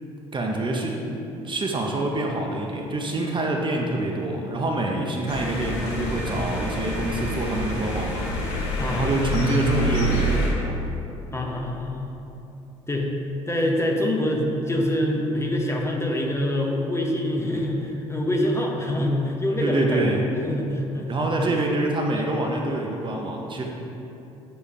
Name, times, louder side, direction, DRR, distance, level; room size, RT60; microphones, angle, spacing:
voice 1, 0.3-1.0 1.4-8.2 8.9-10.8 19.6-20.2 21.1-23.6, right 2 dB, 35° right, 1 dB, 0.9 m, -26 dB
sound 1, 5.3-10.5, equal, 80° left, 0.9 m, -27 dB
voice 2, 8.8-9.2 11.3-12.1 12.9-13.1 13.5-20.1 20.4-21.1 21.5-21.6 22.1-22.3, left 1 dB, 20° left, 0 dB, 0.9 m, -25 dB
7.1 x 3.4 x 4.3 m, 2.9 s
hypercardioid pair, 55°, 15 cm